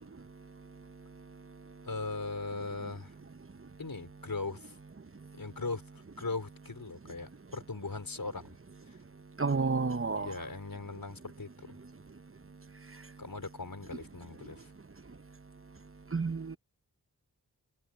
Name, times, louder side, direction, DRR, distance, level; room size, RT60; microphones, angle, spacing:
voice 1, 1.8-3.2 3.8-4.8 5.3-8.6 8.8-9.0 10.1-11.8 13.2-14.7, left 3 dB, 60° left, 4.5 m, -39 dB
voice 2, 9.4-10.3 16.1-16.6, right 4 dB, 35° right, 1.0 m, -30 dB
open air
wide cardioid pair, 50°, 38 cm